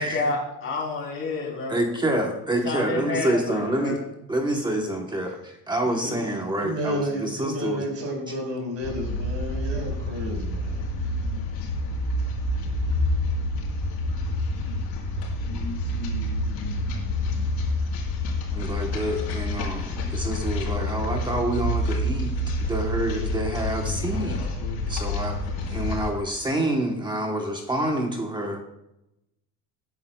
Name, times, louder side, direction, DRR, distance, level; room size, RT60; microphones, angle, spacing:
voice 1, 0.0-1.8 2.6-4.0, left 3 dB, 35° left, -1 dB, 4.0 m, -29 dB
voice 2, 1.7-4.0 4.3-7.8 18.5-24.5 24.9-28.6, right 1 dB, 10° right, 2 dB, 1.0 m, -27 dB
voice 3, 5.8-6.2 6.5-11.2, equal, 40° right, 1 dB, 4.8 m, -32 dB
sound 1, 8.8-26.1, left 1 dB, 75° left, 4.4 m, -28 dB
20.0 x 10.5 x 2.3 m, 0.87 s
cardioid pair, 175°, 38 cm